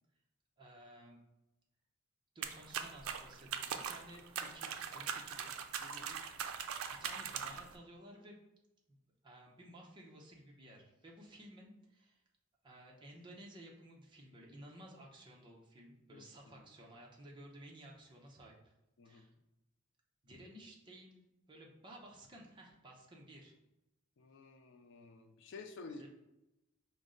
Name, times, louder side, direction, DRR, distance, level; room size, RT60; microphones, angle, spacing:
voice 1, 0.6-1.2 2.3-5.5 6.9-8.4 9.2-12.2 12.6-18.7 19.0-19.3 20.2-23.6 25.9-26.1, right 1 dB, 20° right, -2 dB, 0.6 m, -55 dB
sound 1, 2.4-7.7, right 7 dB, 80° right, 0.4 m, -41 dB
voice 2, 5.8-6.2 16.1-16.3 19.0-19.2 24.2-26.0, left 4 dB, 60° left, 6 dB, 0.4 m, -52 dB
5.1 x 2.1 x 3.7 m, 0.94 s
head